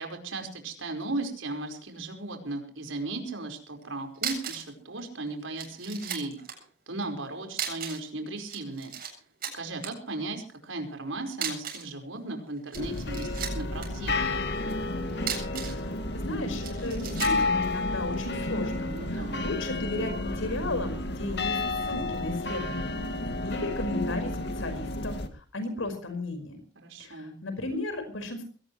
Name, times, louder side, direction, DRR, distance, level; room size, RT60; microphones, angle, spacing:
voice 1, 0.0-8.9 9.5-14.3 18.9-19.4 26.7-27.4, right 2 dB, 75° right, 5 dB, 5.0 m, -36 dB
sound 1, 3.8-3.9 4.2-4.7 5.0-5.1 5.6-6.6 7.5-8.1 8.4-9.1 9.4-9.9 11.3-11.9 12.6-13.9 15.1-15.8 16.6-17.4, right 8 dB, 45° right, 7.8 m, -35 dB
sound 2, 12.7-25.3, left 2 dB, 55° left, 2.2 m, -31 dB
voice 2, 15.5-23.0 23.4-26.6 27.0-28.4, left 2 dB, 75° left, 7 dB, 5.3 m, -35 dB
22.0 x 18.5 x 3.2 m, 0.40 s
head